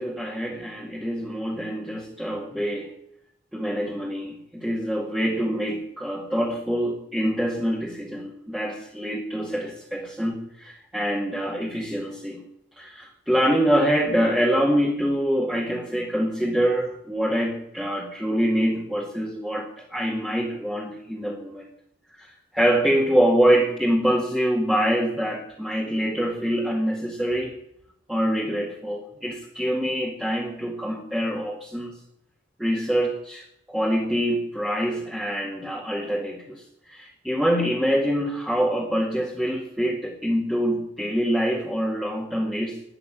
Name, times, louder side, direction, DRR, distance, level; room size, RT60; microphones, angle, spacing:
voice 1, 0.0-2.9 3.5-12.4 12.8-21.6 22.2-27.5 28.1-31.9 32.6-42.8, equal, 5° right, -4 dB, 2.2 m, -25 dB
13.0 x 10.5 x 8.8 m, 0.76 s
head